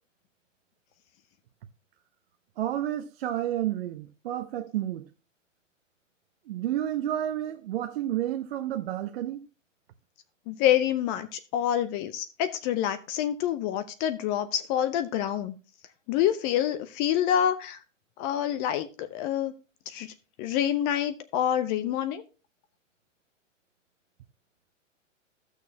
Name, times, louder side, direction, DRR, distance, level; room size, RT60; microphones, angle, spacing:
voice 1, 2.6-5.1 6.5-9.4, right 12 dB, 50° right, 0.7 m, -30 dB
voice 2, 10.5-15.6 16.1-17.8 18.2-19.5 19.9-20.1 20.4-22.2, left 10 dB, 25° left, 0.6 m, -27 dB
14.0 x 6.4 x 2.8 m
hypercardioid pair, 120°, 38 cm